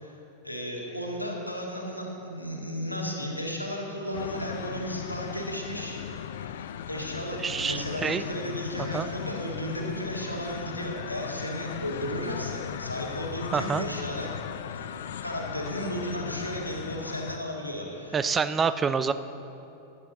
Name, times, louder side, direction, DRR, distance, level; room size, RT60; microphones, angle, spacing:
voice 1, 0.4-6.0 6.6-14.3 14.7-14.9 15.2-18.3, equal, 90° left, -1 dB, 1.8 m, -34 dB
sound 1, 4.1-17.4, left 9 dB, 60° left, 0.4 m, -37 dB
voice 2, 7.4-8.2 8.9-9.1 13.5-13.9 18.1-19.1, right 6 dB, 20° right, 13 dB, 0.4 m, -26 dB
13.0 x 11.5 x 3.9 m, 2.8 s
figure-of-eight pair, 90°, 0 cm